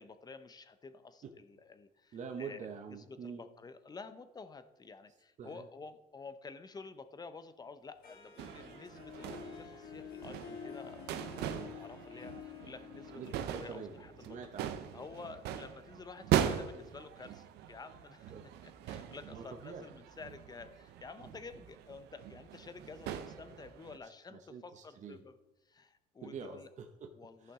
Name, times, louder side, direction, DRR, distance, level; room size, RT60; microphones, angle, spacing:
voice 1, 0.0-2.7 3.1-14.4 14.9-18.3 18.6-25.4 25.7-26.7 27.1-27.5, left 4 dB, 25° left, 11 dB, 0.7 m, -51 dB
voice 2, 2.1-3.4 5.4-5.7 11.5-11.7 13.1-13.9 14.2-15.0 18.3-18.5 19.3-19.9 24.0-25.2 26.2-27.1 27.4-27.5, right 5 dB, 45° right, 3 dB, 0.8 m, -46 dB
Harp, 8.0-14.9, left 7 dB, 60° left, 1.4 m, -50 dB
sound 1, 8.4-24.0, right 10 dB, 80° right, 0.7 m, -40 dB
14.0 x 5.7 x 3.7 m, 1.0 s
cardioid pair, 110°, 17 cm